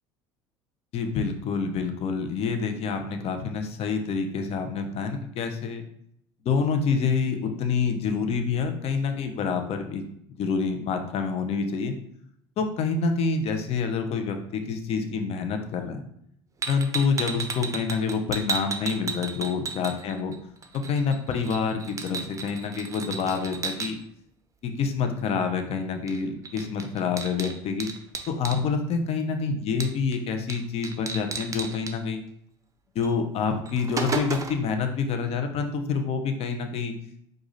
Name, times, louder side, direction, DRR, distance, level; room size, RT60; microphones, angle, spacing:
voice 1, 0.9-5.8 6.4-10.0 10.3-11.9 12.6-16.0 16.7-20.3 20.7-24.0 24.6-27.9 28.3-32.2 32.9-36.9, left 5 dB, 50° left, 6 dB, 0.8 m, -27 dB
sound 1, 16.6-20.4 20.6-23.9 26.1-26.2 26.5-28.6 29.8-30.2 30.5-30.6 30.8-31.9 33.0-33.1 33.5-34.7, right 5 dB, 25° right, 0.7 m, -33 dB
4.9 x 2.5 x 4.0 m, 0.71 s
hypercardioid pair, 80°, 13 cm